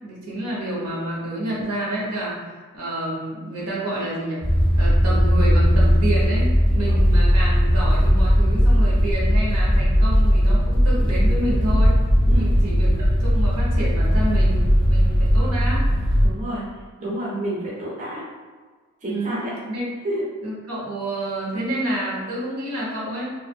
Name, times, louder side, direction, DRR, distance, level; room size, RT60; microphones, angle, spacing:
voice 1, 0.0-4.4 4.8-12.0 12.2-12.9 13.2-15.9 19.0-19.9 20.4-23.3, right 1 dB, 90° right, -5 dB, 1.0 m, -29 dB
sound 1, 4.4-16.3, equal, 25° left, 0.6 m, -18 dB
voice 2, 16.2-18.2 19.0-19.5 20.0-20.2, right 1 dB, 35° right, -5 dB, 0.4 m, -29 dB
2.4 x 2.4 x 2.6 m, 1.5 s
head